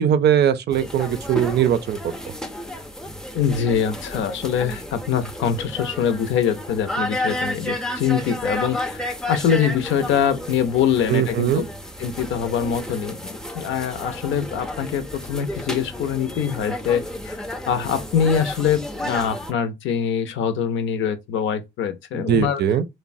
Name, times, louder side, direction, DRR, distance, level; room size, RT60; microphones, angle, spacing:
voice 1, 0.0-2.0 11.1-11.7 22.1-22.9, right 9 dB, 55° right, 0.4 m, -20 dB
sound 1, 0.7-19.5, left 1 dB, 5° left, 0.5 m, -32 dB
voice 2, 3.3-11.6 12.0-17.4 17.7-22.6, left 8 dB, 75° left, 0.5 m, -24 dB
3.0 x 2.1 x 2.6 m
cardioid pair, 90°, 20 cm